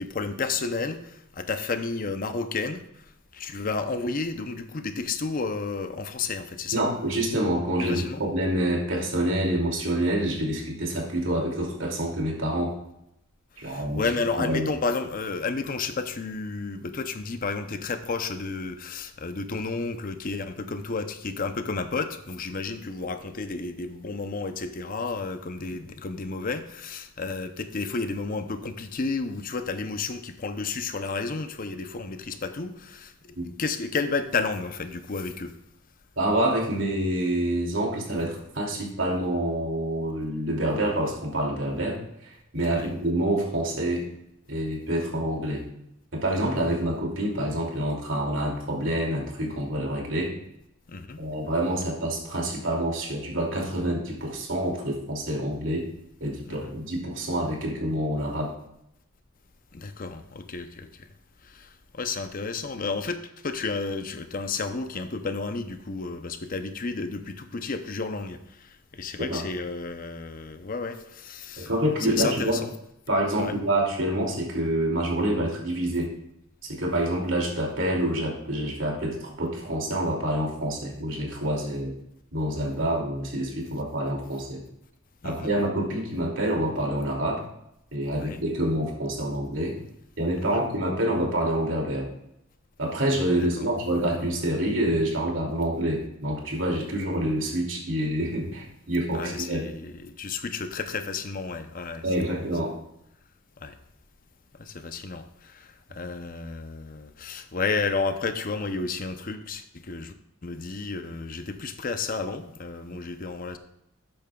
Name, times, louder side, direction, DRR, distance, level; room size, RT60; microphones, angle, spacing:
voice 1, 0.0-2.8 3.3-6.8 7.8-8.2 13.6-33.1 33.6-35.5 42.7-42.9 50.9-51.2 56.5-56.7 59.7-61.1 61.4-63.2 63.4-71.7 72.1-72.7 73.4-73.5 85.2-85.5 88.2-88.4 90.5-90.6 93.4-93.7 99.1-102.4 103.6-103.8 104.6-110.1 110.4-113.6, left 4 dB, 45° left, 9 dB, 0.7 m, -32 dB
voice 2, 6.7-12.7 13.6-14.0 14.4-14.7 33.4-33.5 36.2-42.0 42.5-44.0 44.5-45.6 46.1-50.3 51.2-55.9 56.2-58.5 69.2-69.4 71.6-72.6 73.1-76.1 76.7-81.9 82.3-84.6 85.2-87.4 87.9-89.8 90.2-92.1 92.8-99.7 102.0-102.8, right 1 dB, 70° right, 0 dB, 2.6 m, -27 dB
12.5 x 8.7 x 2.3 m, 0.81 s
head